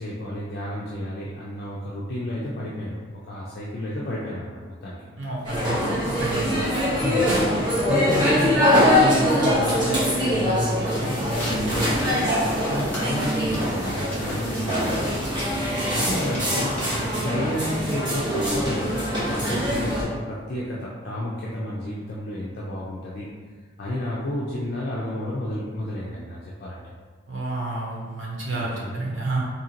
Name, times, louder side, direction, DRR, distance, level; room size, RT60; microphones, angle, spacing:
voice 1, 0.0-5.0 7.0-7.3 7.9-15.2 15.9-16.8 17.2-23.3 23.8-26.8 28.5-29.0, left 1 dB, 55° left, -6 dB, 0.5 m, -31 dB
voice 2, 5.2-6.6 27.2-29.4, right 2 dB, 85° right, -4 dB, 1.0 m, -30 dB
sound 1, 5.4-20.0, equal, 25° right, 1.1 m, -23 dB
sound 2, 10.8-18.2, equal, 10° left, 1.0 m, -37 dB
3.9 x 2.8 x 2.8 m, 1.5 s
head